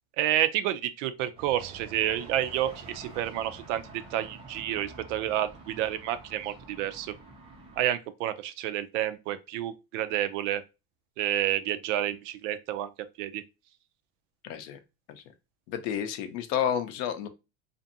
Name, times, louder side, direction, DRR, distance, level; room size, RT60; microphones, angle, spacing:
voice 1, 0.2-7.1 7.8-10.6 11.2-12.9 13.2-13.4, right 12 dB, 75° right, 0.5 m, -29 dB
sound 1, 1.4-7.9, right 3 dB, 15° right, 0.4 m, -48 dB
voice 2, 14.4-14.8 15.1-15.2 15.7-17.3, left 9 dB, 55° left, 0.5 m, -30 dB
2.5 x 2.5 x 2.6 m
supercardioid pair, 145°, 38 cm